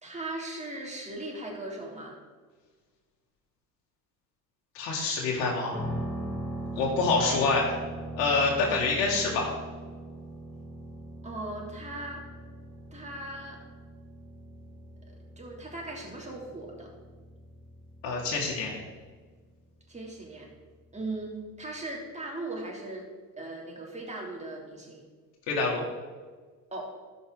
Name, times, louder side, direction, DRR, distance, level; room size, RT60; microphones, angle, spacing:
voice 1, 0.0-2.2 6.7-6.8 11.2-12.3 12.9-13.6 15.4-16.9 19.9-20.5 20.9-23.1 23.4-25.0 26.7-26.9, right 2 dB, 15° right, -2 dB, 3.0 m, -38 dB
voice 2, 4.7-5.8 6.8-7.8 8.2-9.5 18.0-18.7 25.5-25.8, left 3 dB, 65° left, -2 dB, 2.1 m, -26 dB
sound 1, 5.7-21.6, right 1 dB, ahead, 1.7 m, -41 dB
13.0 x 5.5 x 3.9 m, 1.4 s
hypercardioid pair, 75°, 48 cm